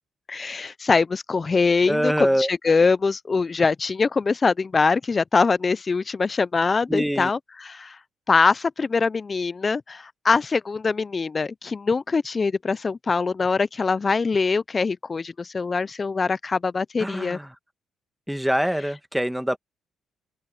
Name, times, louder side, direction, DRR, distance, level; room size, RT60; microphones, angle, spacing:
voice 1, 0.3-8.0 8.3-17.4, left 4 dB, 30° left, 0.5 m, -23 dB
voice 2, 1.9-2.5 6.9-7.3 17.0-17.5 18.3-19.6, equal, 5° right, 1.4 m, -24 dB
open air
cardioid pair, 90°, 0 cm